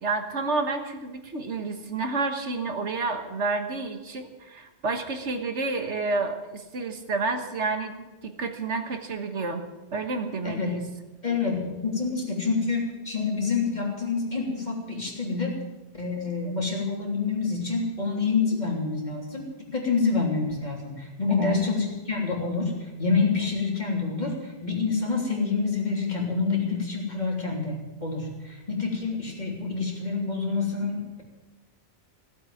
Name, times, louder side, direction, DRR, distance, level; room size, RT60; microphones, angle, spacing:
voice 1, 0.0-9.6 9.9-10.8 21.3-21.6, right 3 dB, 80° right, 6 dB, 1.7 m, -30 dB
voice 2, 10.4-10.8 11.2-15.6 15.9-31.2, left 4 dB, 40° left, -1 dB, 3.3 m, -27 dB
16.0 x 8.2 x 9.2 m, 1.1 s
omnidirectional pair, 1.2 m